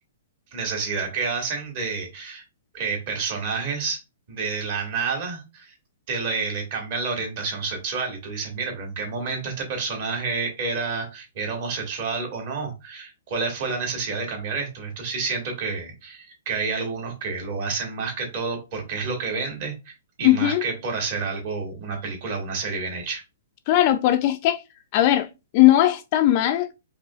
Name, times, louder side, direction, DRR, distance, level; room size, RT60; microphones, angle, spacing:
voice 1, 0.5-2.4 2.7-4.0 4.3-5.7 6.1-23.2, right 4 dB, 45° right, 1.8 m, -29 dB
voice 2, 20.2-20.6 23.7-24.6 24.9-26.8, left 14 dB, 35° left, 0.4 m, -19 dB
4.8 x 2.8 x 2.4 m
hypercardioid pair, 155°, 0 cm